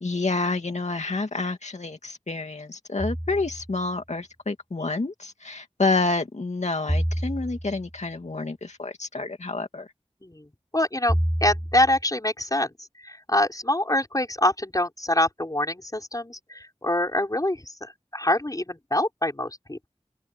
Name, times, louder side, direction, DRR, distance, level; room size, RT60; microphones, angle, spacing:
voice 1, 0.0-9.9, left 3 dB, 80° left, 2.3 m, -28 dB
sound 1, 3.0-3.8 6.9-7.9 11.1-12.0, equal, 10° right, 3.8 m, -28 dB
voice 2, 10.7-11.1 11.4-12.7 13.0-19.9, left 1 dB, 30° left, 5.5 m, -25 dB
wide cardioid pair, 45°, 12 cm